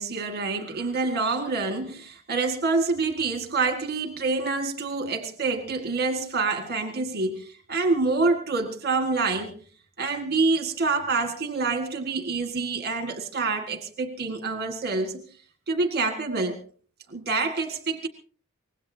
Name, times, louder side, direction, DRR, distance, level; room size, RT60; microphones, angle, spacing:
voice 1, 0.0-9.5 10.0-15.2 15.7-16.6 17.1-18.1, right 3 dB, 45° right, 6 dB, 1.7 m, -27 dB
24.5 x 19.5 x 2.8 m, 0.42 s
head